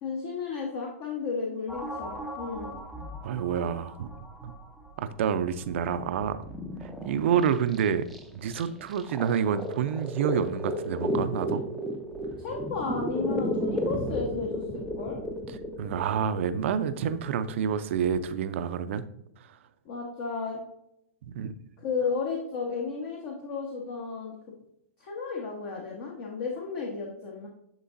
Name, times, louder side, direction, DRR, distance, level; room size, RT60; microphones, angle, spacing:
voice 1, 0.0-2.8 12.4-15.2 19.8-20.6 21.8-24.3 25.0-27.5, left 5 dB, 45° left, -1 dB, 1.3 m, -33 dB
sound 1, 1.7-5.2 5.5-18.3, equal, ahead, 0.6 m, -35 dB
voice 2, 3.2-4.1 4.4-4.5 5.0-6.4 7.0-8.1 8.3-11.6 15.8-19.0 21.2-21.5, right 8 dB, 55° right, 11 dB, 0.5 m, -28 dB
10.0 x 3.7 x 2.6 m, 0.79 s
hypercardioid pair, 120°, 8 cm